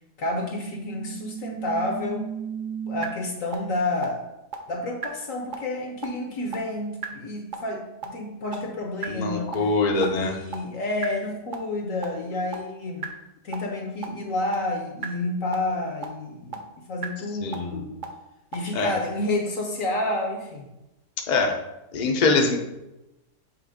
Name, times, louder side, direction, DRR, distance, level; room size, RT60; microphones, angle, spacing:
voice 1, 0.2-2.3 2.9-4.3 4.7-13.1 13.4-18.0 18.5-20.7, left 2 dB, 60° left, 2 dB, 1.1 m, -30 dB
sound 1, 0.6-3.0 3.5-3.6 4.0-4.1 4.5-4.6 5.0-5.1 5.5-5.6 6.0-6.1 6.5-6.6 7.0-7.1 7.5-7.6 8.0-8.1 8.5-8.6 9.0-9.1 9.5-9.6 10.0-10.1 10.5-10.6 11.0-11.1 11.5-11.6 12.0-12.1 12.5-12.6 13.0-13.1 13.5-13.6 14.0-14.1 14.5-14.6 15.0-15.1 15.5-15.6 16.0-16.1 16.5-16.6 17.0-17.1 17.5-17.6 18.0-18.1 18.5-18.6, right 8 dB, 55° right, 0.5 m, -32 dB
voice 2, 9.1-10.4 17.4-17.7 18.7-18.9 21.3-21.6 21.9-22.6, left 3 dB, 40° left, 2 dB, 0.6 m, -23 dB
7.7 x 3.1 x 5.0 m, 0.94 s
omnidirectional pair, 1.8 m